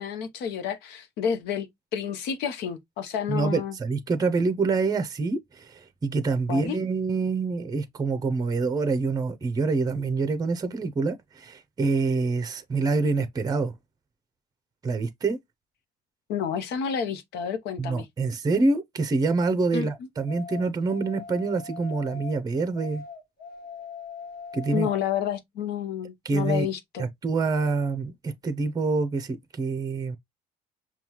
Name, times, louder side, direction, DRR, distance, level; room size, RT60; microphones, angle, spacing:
voice 1, 0.0-3.8 6.5-6.8 16.3-18.1 19.7-19.9 24.7-27.1, left 8 dB, 85° left, 0.8 m, -30 dB
voice 2, 3.3-13.7 14.8-15.4 17.8-23.0 24.5-24.9 26.2-26.7 27.0-30.2, right 3 dB, 20° right, 0.6 m, -26 dB
sound 1, 20.3-22.4 22.7-25.0, left 5 dB, 55° left, 1.2 m, -41 dB
5.4 x 2.3 x 2.9 m
cardioid pair, 110°, 17 cm